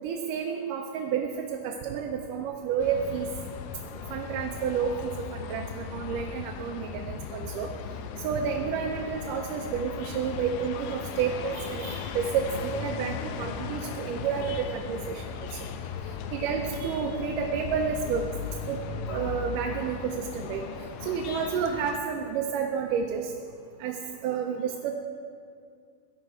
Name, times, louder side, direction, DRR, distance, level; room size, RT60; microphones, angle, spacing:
voice 1, 0.0-3.3 4.1-7.7 8.2-15.2 16.3-18.2 18.7-18.8 19.1-20.6 21.0-23.3 23.8-24.0 24.2-24.9, right 7 dB, 80° right, 2 dB, 2.4 m, -30 dB
sound 1, 2.8-22.0, left 7 dB, 80° left, 2.0 m, -37 dB
17.5 x 11.0 x 4.6 m, 2.3 s
omnidirectional pair, 3.7 m